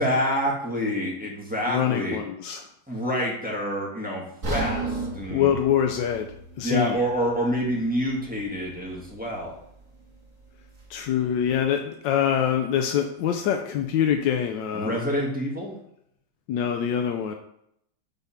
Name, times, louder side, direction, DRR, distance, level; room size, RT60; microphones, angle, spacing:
voice 1, 0.0-2.2 2.9-4.2 4.5-5.5 6.6-9.5 14.7-15.7, equal, 5° right, -4 dB, 1.6 m, -27 dB
voice 2, 1.7-2.6 5.3-6.3 6.6-7.0 10.9-15.0 16.5-17.3, left 9 dB, 85° left, 4 dB, 1.3 m, -24 dB
sound 1, 4.4-8.5 8.8-9.0 9.6-9.7, right 2 dB, 45° right, 2.4 m, -34 dB
7.8 x 3.6 x 5.7 m, 0.73 s
omnidirectional pair, 1.9 m